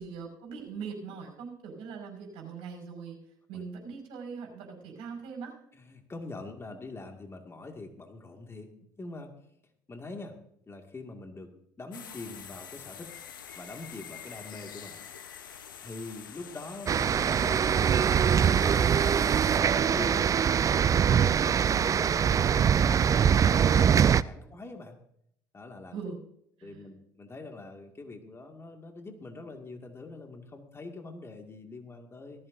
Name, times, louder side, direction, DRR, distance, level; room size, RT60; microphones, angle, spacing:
voice 1, 0.0-3.2 3.5-5.5 24.5-24.6 25.9-26.2 26.6-26.8, right 5 dB, 65° right, 2 dB, 5.5 m, -41 dB
voice 2, 5.7-9.3 9.9-10.4 10.7-11.5 11.8-13.1 13.5-15.0 15.8-18.1 18.5-19.3 19.7-20.3 20.9-25.0 25.5-26.0 26.6-32.5, left 2 dB, 25° left, 4 dB, 2.2 m, -44 dB
sound 1, 11.9-19.6, left 8 dB, 90° left, 1.0 m, -46 dB
sound 2, 16.9-24.2, right 8 dB, 30° right, 0.4 m, -23 dB
18.0 x 15.0 x 2.7 m, 0.71 s
hypercardioid pair, 65°, 11 cm